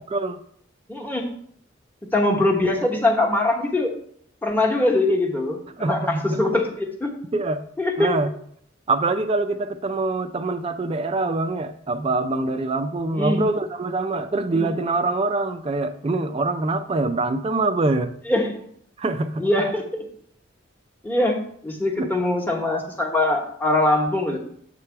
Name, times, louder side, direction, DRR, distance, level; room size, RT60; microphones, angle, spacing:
voice 1, 0.9-1.2 2.0-3.9 4.4-7.1 7.8-8.2 13.1-13.4 14.5-14.7 18.3-18.7 19.4-20.1 21.0-21.4 21.6-24.4, left 2 dB, 10° left, 0 dB, 1.0 m, -22 dB
voice 2, 5.8-6.4 7.3-7.6 8.0-8.3 8.9-18.1 19.0-19.4 22.0-22.1, right 3 dB, 30° right, 9 dB, 0.3 m, -24 dB
7.4 x 3.3 x 5.7 m, 0.64 s
head